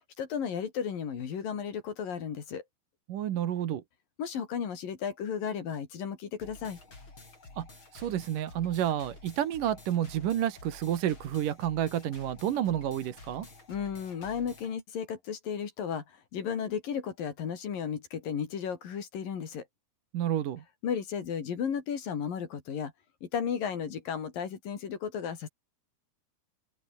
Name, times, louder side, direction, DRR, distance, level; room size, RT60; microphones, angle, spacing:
voice 1, 0.2-2.6 4.2-6.8 13.7-19.7 20.8-22.9 23.2-25.5, left 7 dB, 60° left, 4.6 m, -34 dB
voice 2, 3.1-3.8 7.6-7.7 7.9-13.5 20.1-20.6, right 11 dB, 65° right, 3.0 m, -30 dB
sound 1, 6.4-14.7, left 3 dB, 30° left, 7.1 m, -51 dB
open air
omnidirectional pair, 4.5 m